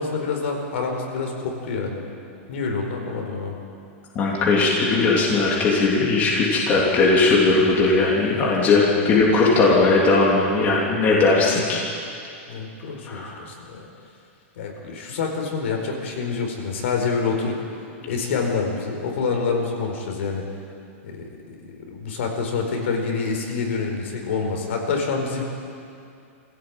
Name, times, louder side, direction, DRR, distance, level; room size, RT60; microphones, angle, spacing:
voice 1, 0.0-2.0 2.5-3.5 8.9-9.0 12.5-13.9 14.6-17.6 18.0-20.5 21.0-25.4, left 4 dB, 65° left, 1 dB, 4.8 m, -27 dB
voice 2, 4.1-11.8 13.1-13.4, left 3 dB, 20° left, -4 dB, 3.3 m, -18 dB
23.5 x 16.5 x 9.1 m, 2.5 s
supercardioid pair, 165°, 7 cm